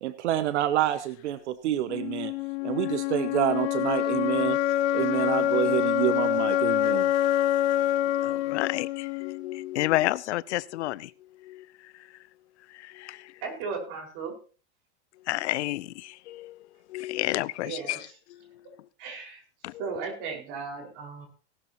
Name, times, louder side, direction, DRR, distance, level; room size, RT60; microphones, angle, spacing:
voice 1, 0.0-2.3 2.6-4.6 4.9-7.1, right 12 dB, 85° right, 0.9 m, -27 dB
sound 1, 1.9-9.8, left 12 dB, 45° left, 1.2 m, -26 dB
voice 2, 8.2-11.1 11.4-11.9 12.7-13.3 15.3-16.6 16.9-18.0 19.6-20.0, left 16 dB, 75° left, 0.6 m, -31 dB
voice 3, 13.4-14.3 17.6-18.1 19.0-19.4 19.8-21.3, right 5 dB, 50° right, 5.2 m, -36 dB
17.5 x 12.5 x 3.0 m
supercardioid pair, 135°, 34 cm